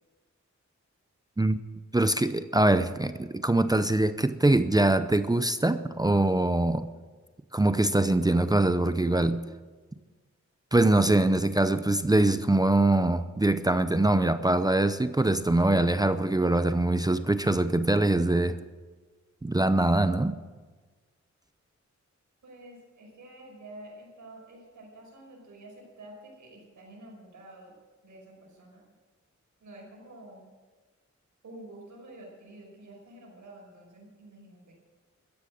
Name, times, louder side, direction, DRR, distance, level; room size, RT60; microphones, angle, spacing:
voice 1, 1.9-6.9 7.5-9.4 10.7-18.6 19.4-20.4, right 2 dB, 15° right, 0.6 m, -23 dB
voice 2, 22.4-27.7 28.0-28.9 29.6-30.5 31.4-34.8, right 1 dB, 85° right, 5.7 m, -49 dB
14.0 x 10.0 x 8.7 m
wide cardioid pair, 100°, 29 cm